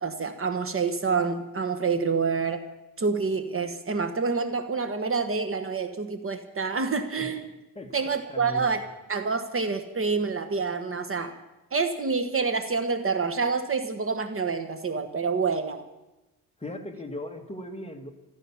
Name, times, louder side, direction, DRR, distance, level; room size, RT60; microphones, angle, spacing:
voice 1, 0.0-2.6 3.0-7.5 7.9-8.8 9.1-11.4 11.7-15.8, right 4 dB, 35° right, 8 dB, 1.3 m, -27 dB
voice 2, 8.3-8.7 16.6-18.1, left 1 dB, 15° left, 4 dB, 1.7 m, -38 dB
14.5 x 13.5 x 7.1 m, 1.0 s
cardioid pair, 135°, 38 cm